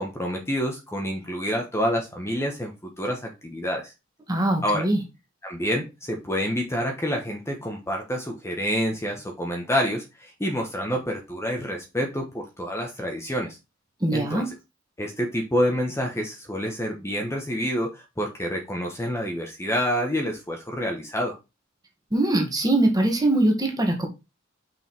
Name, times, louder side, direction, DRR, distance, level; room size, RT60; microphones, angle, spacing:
voice 1, 0.0-3.9 4.6-4.9 5.4-13.6 14.1-14.4 15.0-21.4, equal, 15° left, 1.3 m, -28 dB
voice 2, 4.3-5.0 14.0-14.5 22.1-24.1, right 1 dB, 20° right, 2.1 m, -22 dB
6.0 x 5.3 x 4.5 m
head